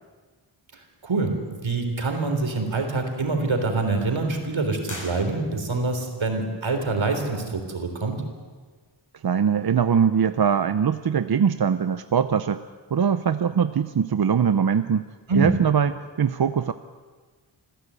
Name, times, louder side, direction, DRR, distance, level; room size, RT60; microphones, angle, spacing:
voice 1, 0.7-8.2 15.3-15.5, right 3 dB, 80° right, 5 dB, 3.7 m, -25 dB
sound 1, 4.8-5.9, left 1 dB, 40° left, 6.7 m, -40 dB
voice 2, 9.2-12.6 12.9-15.0 15.3-16.7, right 7 dB, 55° right, 11 dB, 0.7 m, -22 dB
26.5 x 15.0 x 8.2 m, 1.5 s
wide cardioid pair, 100°, 46 cm